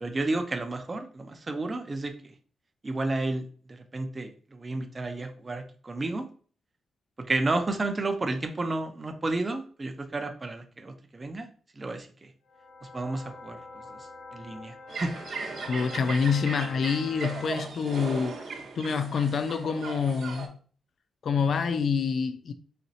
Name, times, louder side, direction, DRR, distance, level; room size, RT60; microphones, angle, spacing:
voice 1, 0.0-2.1 2.8-3.4 3.9-6.3 7.3-11.5 11.8-12.1 12.9-13.6 14.3-15.1, right 2 dB, 25° right, 0.4 m, -31 dB
sound 1, 12.5-17.5, left 2 dB, 75° left, 1.6 m, -45 dB
sound 2, 14.9-20.5, right 4 dB, 60° right, 0.8 m, -38 dB
voice 2, 15.7-18.4 18.8-20.6 21.2-22.5, left 5 dB, 55° left, 0.3 m, -27 dB
4.1 x 2.9 x 2.6 m
wide cardioid pair, 140°, 0 cm